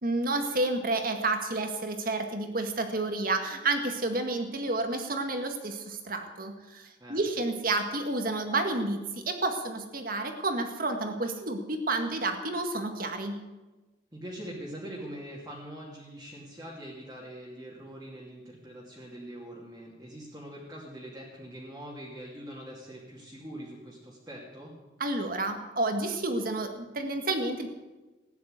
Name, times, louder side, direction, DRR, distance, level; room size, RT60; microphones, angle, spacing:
voice 1, 0.0-13.4 25.0-27.7, right 2 dB, 50° right, 5 dB, 1.9 m, -30 dB
voice 2, 14.1-24.7, right 1 dB, 20° right, -5 dB, 2.7 m, -43 dB
15.5 x 10.0 x 8.1 m, 1.2 s
head